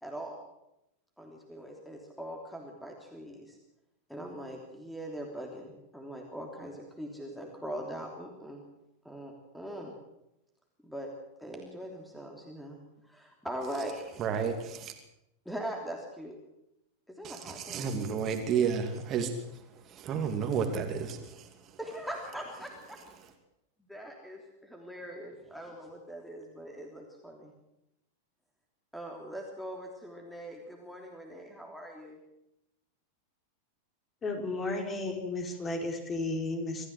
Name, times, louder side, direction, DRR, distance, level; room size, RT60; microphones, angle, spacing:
voice 1, 0.0-0.4 1.2-3.6 4.1-8.6 9.0-9.9 10.8-11.1 11.4-12.8 13.0-14.2 15.4-16.4 17.1-17.9 21.8-23.0 23.8-27.5 28.9-32.2, right 1 dB, ahead, 1 dB, 3.2 m, -41 dB
voice 2, 14.2-14.9 17.2-21.8, right 6 dB, 30° right, 5 dB, 2.7 m, -32 dB
voice 3, 34.2-36.9, left 2 dB, 25° left, 3 dB, 4.7 m, -33 dB
26.0 x 15.0 x 7.9 m, 0.88 s
figure-of-eight pair, 90°, 0 cm